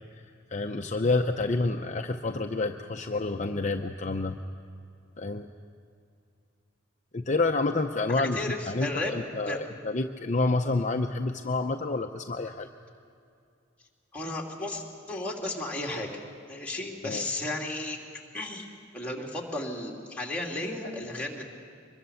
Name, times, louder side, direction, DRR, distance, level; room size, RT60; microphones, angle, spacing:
voice 1, 0.5-4.4 5.2-5.5 7.1-12.7 17.0-17.2, left 3 dB, 40° left, 4 dB, 0.7 m, -28 dB
voice 2, 8.1-9.1 9.5-9.6 14.1-16.1 16.5-18.0 18.3-18.7 18.9-21.4, left 2 dB, 5° left, -2 dB, 2.8 m, -34 dB
24.0 x 21.5 x 7.1 m, 2.4 s
head